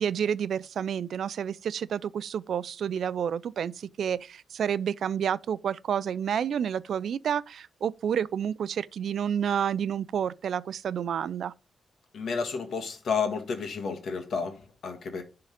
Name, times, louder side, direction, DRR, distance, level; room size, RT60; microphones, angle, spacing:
voice 1, 0.0-11.5, right 8 dB, 75° right, 0.4 m, -29 dB
voice 2, 12.1-15.2, left 5 dB, 65° left, 1.7 m, -31 dB
11.5 x 3.8 x 5.0 m
cardioid pair, 105°, 0 cm